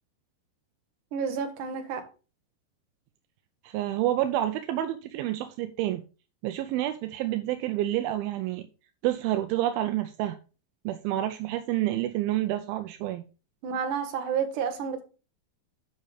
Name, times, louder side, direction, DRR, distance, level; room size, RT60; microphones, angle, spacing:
voice 1, 1.1-2.0 13.6-15.0, right 6 dB, 60° right, 2.6 m, -30 dB
voice 2, 3.6-6.0 6.4-8.7 9.0-10.4 10.9-13.2, right 13 dB, 80° right, 2.2 m, -28 dB
9.8 x 6.1 x 3.4 m
omnidirectional pair, 4.7 m